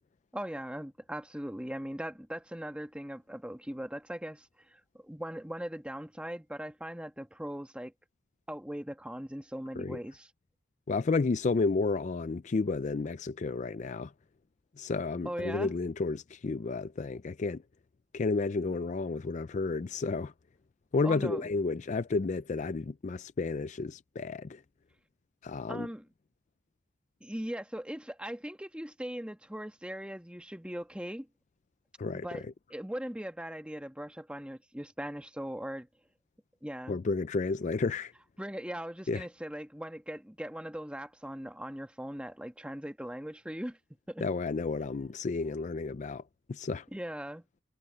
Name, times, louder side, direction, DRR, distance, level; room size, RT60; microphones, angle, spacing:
voice 1, 0.3-7.9 8.5-10.3 15.2-15.7 21.0-21.5 25.7-26.1 27.2-31.3 32.2-32.4 32.7-35.9 36.6-37.0 38.4-43.8 44.1-44.2 46.9-47.4, equal, 5° right, 1.6 m, -39 dB
voice 2, 10.9-14.1 14.8-17.6 18.1-20.3 20.9-24.6 25.4-25.9 32.0-32.4 36.9-38.1 39.1-39.3 44.2-46.2 46.5-46.9, left 3 dB, 40° left, 0.4 m, -31 dB
head